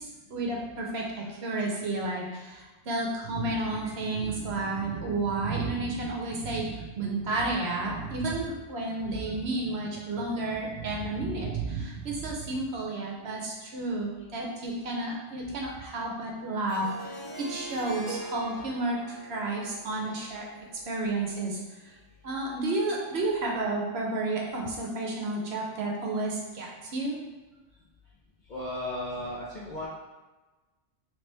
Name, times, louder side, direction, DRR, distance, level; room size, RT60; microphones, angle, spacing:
voice 1, 0.0-20.5 20.9-21.9 22.2-27.2, right 2 dB, 60° right, -1 dB, 0.8 m, -31 dB
Harp, 16.7-21.6, equal, 35° left, 1.0 m, -43 dB
voice 2, 28.5-29.9, left 1 dB, 50° left, -6 dB, 0.6 m, -35 dB
3.2 x 3.0 x 3.2 m, 1.2 s
omnidirectional pair, 1.3 m